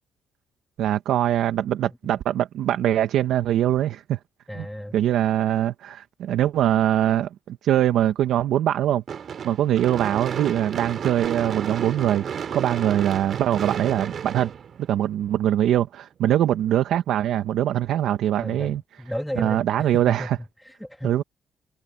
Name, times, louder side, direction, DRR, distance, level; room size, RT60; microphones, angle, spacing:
voice 1, 0.8-4.2 4.5-4.7 4.9-9.0 9.4-12.2 12.5-14.5 14.9-18.8 19.4-20.4 21.0-21.2, right 11 dB, 80° right, 1.3 m, -22 dB
voice 2, 4.5-5.0 18.4-21.2, equal, 5° left, 2.5 m, -34 dB
Gunshot gunfire / Fireworks, 9.1-15.3, right 7 dB, 55° right, 3.3 m, -32 dB
cardioid pair, 90°, 0 cm